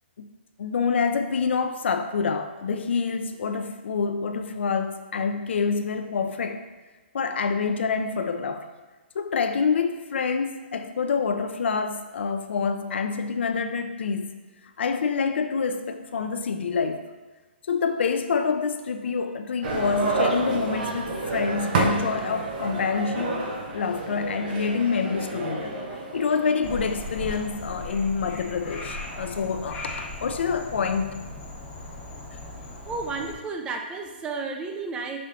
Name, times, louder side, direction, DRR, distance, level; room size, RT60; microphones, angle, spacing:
voice 1, 0.6-6.6 7.1-8.6 9.1-14.4 14.8-17.0 17.7-23.4 23.7-25.8 26.1-31.2, left 5 dB, 70° left, 7 dB, 0.4 m, -27 dB
sound 1, 19.6-27.4, right 3 dB, 50° right, 0.7 m, -29 dB
Frog, 26.6-33.3, left 2 dB, 15° left, 0.8 m, -38 dB
voice 2, 32.9-35.2, right 4 dB, 15° right, 3 dB, 0.3 m, -32 dB
5.4 x 3.1 x 2.7 m, 1.3 s
hypercardioid pair, 140°, 6 cm